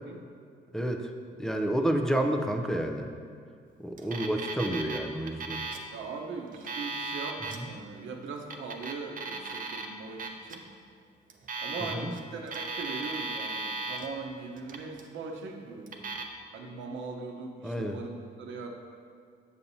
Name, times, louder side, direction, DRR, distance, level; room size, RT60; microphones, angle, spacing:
voice 1, 0.7-1.1 1.4-3.1 3.8-5.6 7.6-7.7 11.8-12.2 17.6-18.0, right 1 dB, 5° left, 3 dB, 0.5 m, -30 dB
Alarm, 4.0-5.0 5.3-5.9 6.5-7.6 8.4-9.9 10.2-10.6 11.3-12.2 12.5-14.1 14.6-15.1 15.9-16.2, right 3 dB, 45° right, 0.6 m, -36 dB
voice 2, 5.9-10.6 11.6-16.1 16.5-18.7, right 4 dB, 70° right, 2 dB, 0.9 m, -40 dB
7.1 x 7.0 x 2.7 m, 2.1 s
cardioid pair, 90°, 20 cm